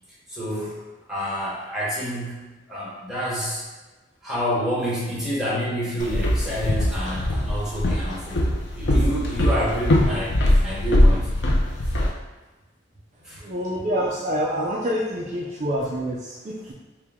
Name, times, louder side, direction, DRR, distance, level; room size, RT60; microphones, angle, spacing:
voice 1, 0.3-0.8 1.1-3.6 4.2-8.4 8.7-11.3 11.8-11.9 13.2-13.5, equal, 5° right, -9 dB, 1.3 m, -28 dB
Walk footsteps, 6.0-12.1, left 1 dB, 70° left, 0.6 m, -21 dB
voice 2, 13.4-16.7, equal, 40° right, -4 dB, 0.4 m, -27 dB
4.5 x 2.2 x 3.6 m, 1.2 s
head